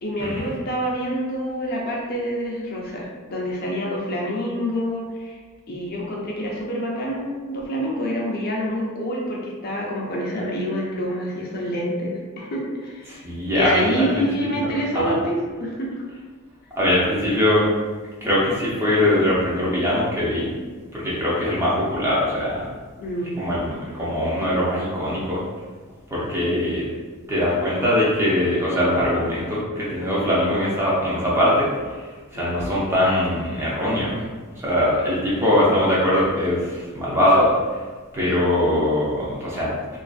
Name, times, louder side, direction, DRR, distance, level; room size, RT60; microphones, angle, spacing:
voice 1, 0.0-5.4 5.7-13.1 13.5-16.0 23.0-23.3 32.3-32.6 38.3-38.4, equal, 45° left, -2 dB, 0.5 m, -27 dB
voice 2, 13.1-14.3 14.6-15.2 16.8-17.6 18.2-20.5 20.9-22.7 23.4-25.4 26.1-26.9 27.3-31.7 32.3-34.2 34.5-37.5 38.1-39.7, left 1 dB, 10° right, -7 dB, 0.6 m, -21 dB
2.5 x 2.4 x 2.4 m, 1.4 s
head